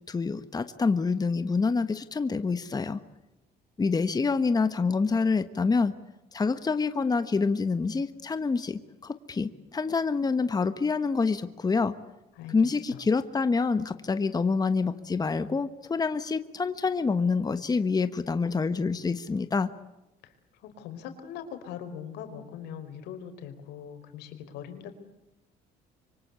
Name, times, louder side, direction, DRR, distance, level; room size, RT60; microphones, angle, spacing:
voice 1, 0.1-3.0 3.8-5.9 6.3-11.9 12.5-19.7, left 4 dB, 20° left, 11 dB, 1.3 m, -27 dB
voice 2, 20.6-25.0, left 8 dB, 85° left, 8 dB, 4.6 m, -41 dB
26.0 x 24.5 x 8.3 m, 0.95 s
cardioid pair, 110°, 17 cm